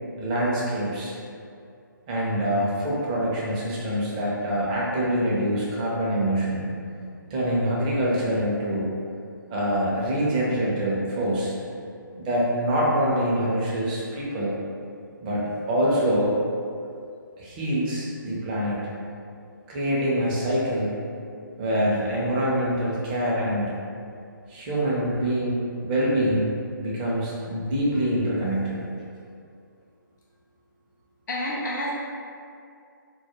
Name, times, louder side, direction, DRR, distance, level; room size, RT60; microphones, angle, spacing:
voice 1, 0.2-1.1 2.1-6.7 7.3-8.9 9.5-11.5 12.2-14.5 15.2-16.3 17.4-18.8 19.7-20.9 21.6-23.7 24.5-26.5 26.8-28.8, equal, 25° right, -6 dB, 0.5 m, -25 dB
voice 2, 31.3-31.9, left 1 dB, 60° left, -5 dB, 0.4 m, -28 dB
2.2 x 2.1 x 2.9 m, 2.4 s
figure-of-eight pair, 140°, 11 cm